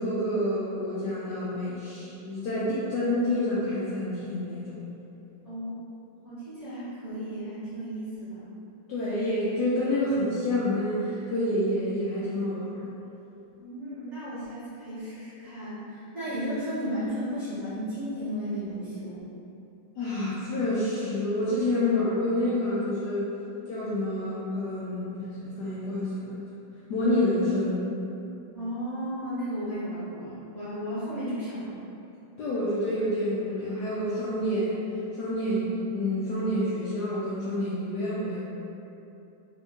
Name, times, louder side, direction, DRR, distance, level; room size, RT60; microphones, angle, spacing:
voice 1, 0.0-4.8 8.9-12.9 20.0-23.3 23.7-26.4 26.9-27.9 32.4-34.8 35.1-38.4, left 1 dB, 70° left, -9 dB, 1.0 m, -28 dB
voice 2, 5.4-5.8 6.2-8.4 13.6-19.3 28.5-31.7, equal, 40° right, -13 dB, 1.4 m, -34 dB
3.5 x 2.6 x 3.5 m, 2.8 s
omnidirectional pair, 2.3 m